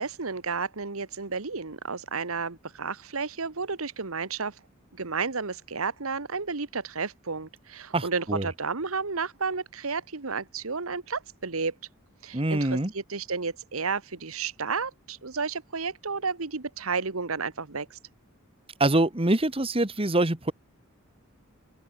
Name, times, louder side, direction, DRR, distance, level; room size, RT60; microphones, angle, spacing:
voice 1, 0.0-4.5 4.9-11.7 12.2-18.0, right 4 dB, 90° right, 1.5 m, -32 dB
voice 2, 7.9-8.5 12.3-12.9 18.8-20.5, right 2 dB, 25° right, 1.6 m, -24 dB
open air
head